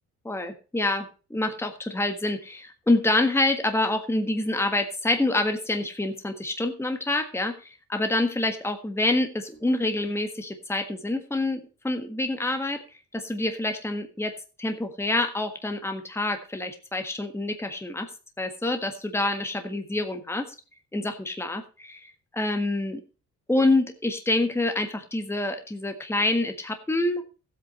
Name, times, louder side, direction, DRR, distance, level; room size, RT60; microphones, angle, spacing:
voice 1, 0.2-12.8 13.1-14.3 14.6-18.1 18.4-20.5 20.9-23.0 23.5-27.2, left 2 dB, 10° left, 6 dB, 1.5 m, -27 dB
14.5 x 8.2 x 4.3 m, 0.34 s
cardioid pair, 90°, 30 cm